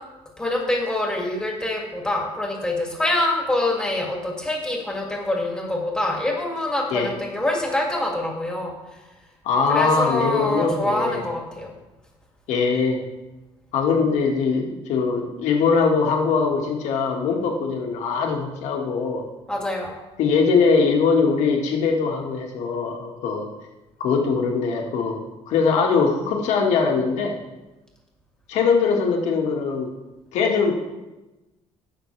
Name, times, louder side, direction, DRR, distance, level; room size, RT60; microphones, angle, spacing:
voice 1, 0.4-8.7 9.7-11.7 19.5-19.9, left 1 dB, 5° left, -1 dB, 2.4 m, -25 dB
voice 2, 9.4-11.2 12.5-13.0 13.7-19.2 20.2-23.5 24.0-27.4 28.5-29.9 30.3-30.7, left 5 dB, 80° left, 0 dB, 1.8 m, -21 dB
17.5 x 6.2 x 3.3 m, 1.1 s
cardioid pair, 130°, 12 cm